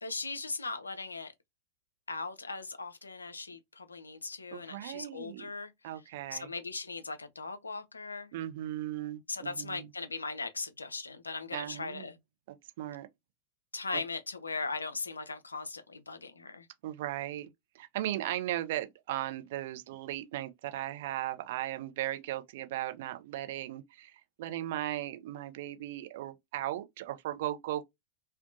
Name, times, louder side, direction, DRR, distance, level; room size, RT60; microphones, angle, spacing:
voice 1, 0.0-1.3 2.1-5.7 6.3-8.3 9.3-12.2 13.7-16.7, left 3 dB, 80° left, 0.4 m, -39 dB
voice 2, 4.5-5.5 5.8-6.5 8.3-9.9 11.5-12.1 12.8-13.1 13.9-14.0 16.8-17.5 17.7-27.8, right 14 dB, 55° right, 0.4 m, -37 dB
2.6 x 2.1 x 2.4 m
figure-of-eight pair, 90°, 0 cm